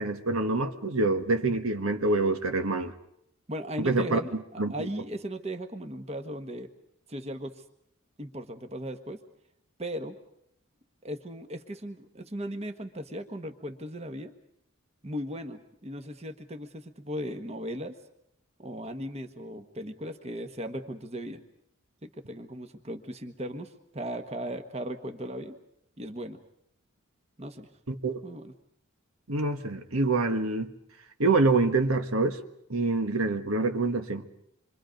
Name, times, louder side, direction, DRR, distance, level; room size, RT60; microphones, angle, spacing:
voice 1, 0.0-2.9 3.8-4.2 4.6-4.9 27.9-28.2 29.3-30.7 31.2-32.4 32.7-34.2, right 3 dB, 80° right, 1.6 m, -26 dB
voice 2, 3.5-6.7 7.1-7.6 8.2-9.2 9.8-10.2 11.0-14.3 15.0-17.9 18.6-21.4 22.0-25.5 26.0-26.4 27.4-27.7 28.2-28.5, equal, 30° right, 1.4 m, -37 dB
27.5 x 24.5 x 5.3 m
head